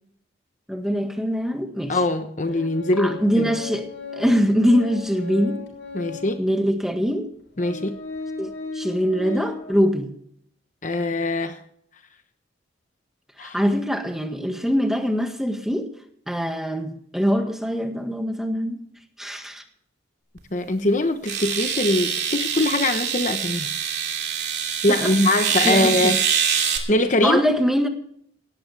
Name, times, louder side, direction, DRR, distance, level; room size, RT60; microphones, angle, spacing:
voice 1, 0.7-2.0 3.0-3.9 4.1-5.6 6.4-7.3 8.4-10.1 13.4-15.9 16.3-18.8 19.2-19.6 24.9-25.1 25.6-25.9 27.2-27.9, equal, ahead, 5 dB, 1.7 m, -23 dB
voice 2, 1.9-3.5 5.9-6.4 7.6-8.0 10.8-11.6 13.4-13.6 20.5-23.7 24.8-26.2 26.6-27.4, left 2 dB, 40° left, 8 dB, 1.1 m, -22 dB
Organ, 2.4-6.4 7.0-7.1 7.6-9.7, left 4 dB, 80° left, 6.7 m, -35 dB
sound 1, 20.4-20.5 21.2-26.8, right 7 dB, 60° right, 2.9 m, -25 dB
18.0 x 15.0 x 3.4 m, 0.66 s
head